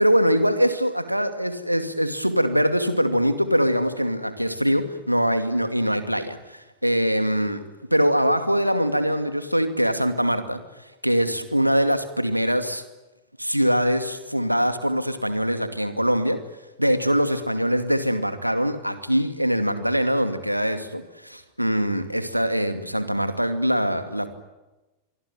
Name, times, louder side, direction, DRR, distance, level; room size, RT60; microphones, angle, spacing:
voice 1, 0.0-7.6 7.9-10.6 11.0-12.8 13.4-16.4 16.8-24.3, equal, 90° right, 2.4 m, -23 dB
25.5 x 24.5 x 9.6 m
figure-of-eight pair, 90°, 0 cm